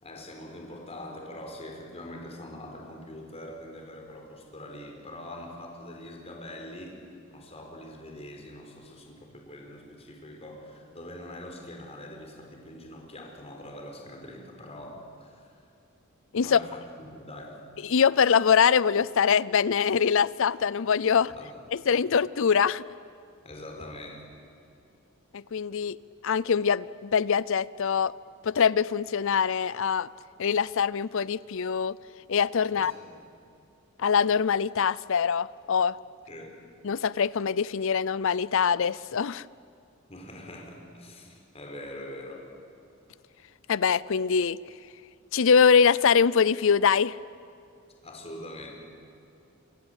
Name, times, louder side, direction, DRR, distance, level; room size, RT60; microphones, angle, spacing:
voice 1, 0.0-15.5 16.4-17.6 21.1-21.6 23.4-24.3 32.7-33.1 36.3-36.6 40.1-42.5 48.0-48.7, left 1 dB, 30° left, 2 dB, 4.8 m, -43 dB
voice 2, 17.8-21.3 21.7-22.8 25.3-26.0 26.2-28.1 28.4-30.1 30.4-32.0 32.3-32.9 34.0-36.0 36.8-39.4 43.7-44.6 45.3-47.2, left 6 dB, 65° left, 20 dB, 0.5 m, -23 dB
27.5 x 23.5 x 8.2 m, 2.6 s
head